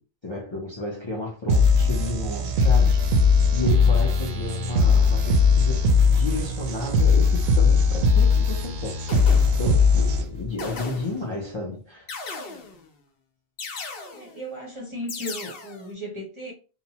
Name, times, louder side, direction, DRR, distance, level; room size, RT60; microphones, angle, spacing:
voice 1, 0.2-3.0 3.5-9.0 9.6-12.1, left 2 dB, 35° left, 0.5 m, -32 dB
sound 1, 1.5-10.5, left 4 dB, 75° right, 0.8 m, -19 dB
sound 2, 8.1-8.3 9.1-9.8 10.6-11.4 12.1-12.9 13.6-14.4 15.1-15.9, left 3 dB, 65° left, 0.8 m, -37 dB
voice 2, 14.1-16.5, equal, 35° right, 0.6 m, -35 dB
2.9 x 2.0 x 2.8 m
omnidirectional pair, 1.1 m